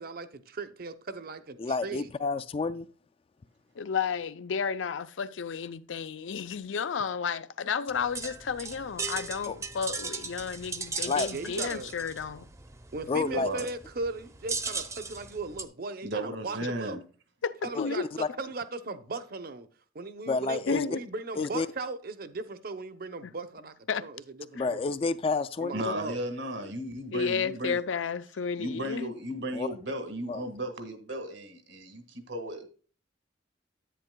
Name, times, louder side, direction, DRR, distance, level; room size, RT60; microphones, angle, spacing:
voice 1, 0.0-2.1 11.3-11.9 12.9-17.0 17.6-19.7 19.9-24.9 25.6-26.2, right 3 dB, 55° right, 0.7 m, -38 dB
voice 2, 1.6-2.9 9.5-9.6 11.0-11.3 13.1-13.5 17.8-17.9 18.2-18.3 20.3-20.8 21.4-21.7 24.5-25.9 29.5-29.7 30.3-30.4, left 4 dB, 30° left, 0.3 m, -29 dB
voice 3, 3.8-12.5 17.4-18.1 20.7-21.0 23.2-23.3 23.9-24.0 24.6-24.7 27.1-29.1, left 6 dB, 85° left, 0.5 m, -32 dB
sound 1, 7.9-15.6, right 4 dB, 15° right, 0.6 m, -37 dB
voice 4, 13.3-13.7 16.0-17.0 25.7-27.8 28.6-32.7, right 1 dB, 75° right, 1.6 m, -35 dB
10.0 x 8.9 x 2.2 m
head